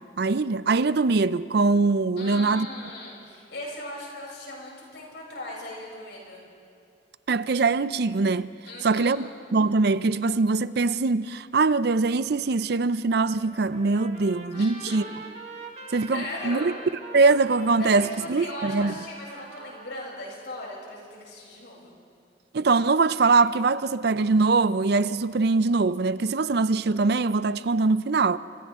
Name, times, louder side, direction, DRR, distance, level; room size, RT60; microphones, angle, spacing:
voice 1, 0.2-2.7 7.3-8.5 8.8-15.0 15.9-16.7 17.1-18.9 22.5-28.4, right 3 dB, 60° right, 0.5 m, -22 dB
voice 2, 2.2-6.4 8.6-9.3 14.5-15.0 16.1-16.7 17.8-21.9, left 1 dB, 70° left, 7.2 m, -38 dB
Trumpet, 13.3-20.1, right 3 dB, 35° right, 1.9 m, -44 dB
30.0 x 26.5 x 3.7 m
head